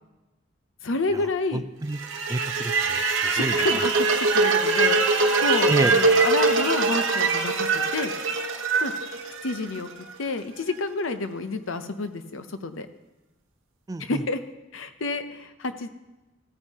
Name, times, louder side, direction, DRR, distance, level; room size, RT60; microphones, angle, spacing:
voice 1, 0.8-1.6 3.3-7.7 7.9-8.1 8.8-8.9 9.4-9.9 10.2-12.9 14.0-14.4 14.7-15.9, left 3 dB, 85° left, 10 dB, 0.7 m, -29 dB
voice 2, 1.5-2.0 2.3-3.6 5.7-5.9 13.9-14.2, right 2 dB, 20° right, 11 dB, 0.4 m, -29 dB
sound 1, 1.9-10.0, right 3 dB, 75° right, 1.1 m, -23 dB
15.0 x 9.0 x 2.9 m, 1.1 s
head